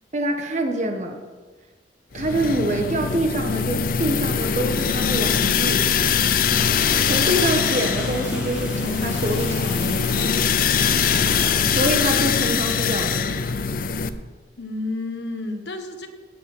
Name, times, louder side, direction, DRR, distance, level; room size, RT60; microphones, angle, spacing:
voice 1, 0.1-1.2 2.1-5.8 7.0-10.3 11.7-13.4, right 1 dB, 40° right, 4 dB, 1.4 m, -26 dB
sound 1, 2.2-14.1, left 6 dB, 50° left, 0.6 m, -22 dB
sound 2, 6.5-11.6, equal, 5° right, 3.7 m, -35 dB
voice 2, 14.6-16.1, left 2 dB, 75° left, 6 dB, 1.4 m, -32 dB
17.5 x 7.6 x 5.6 m, 1.4 s
head